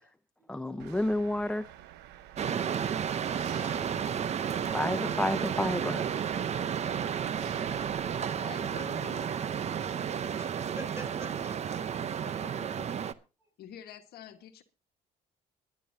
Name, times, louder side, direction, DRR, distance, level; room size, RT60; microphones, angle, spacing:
voice 1, 0.5-1.7 4.7-6.1, left 1 dB, 5° left, 0.6 m, -30 dB
Engine, 0.8-8.2, right 13 dB, 90° right, 1.0 m, -50 dB
sound 1, 2.4-13.1, right 8 dB, 40° right, 0.8 m, -32 dB
voice 2, 8.3-9.3 12.2-12.9 13.6-14.6, left 10 dB, 70° left, 1.6 m, -47 dB
voice 3, 9.8-11.8, right 1 dB, 15° right, 3.7 m, -49 dB
21.5 x 11.0 x 2.8 m
cardioid pair, 110°, 17 cm